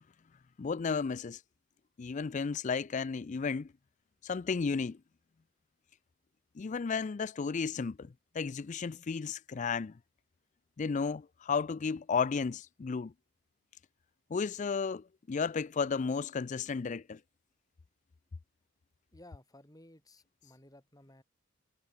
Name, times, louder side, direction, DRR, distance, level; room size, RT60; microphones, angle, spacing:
voice 1, 0.6-1.4 2.0-3.7 4.2-5.0 6.6-9.9 10.8-13.1 14.3-17.2, left 5 dB, 35° left, 0.4 m, -33 dB
voice 2, 19.1-21.2, left 1 dB, 15° left, 6.9 m, -57 dB
head